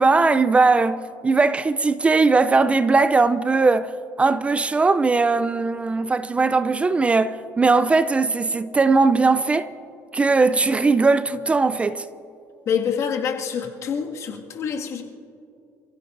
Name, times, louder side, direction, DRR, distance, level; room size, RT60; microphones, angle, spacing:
voice 1, 0.0-3.9 4.2-9.7 10.1-12.0, right 3 dB, 20° right, 0.4 m, -19 dB
voice 2, 12.7-15.0, left 7 dB, 55° left, 2.0 m, -26 dB
29.0 x 16.0 x 2.6 m
cardioid pair, 110°, 6 cm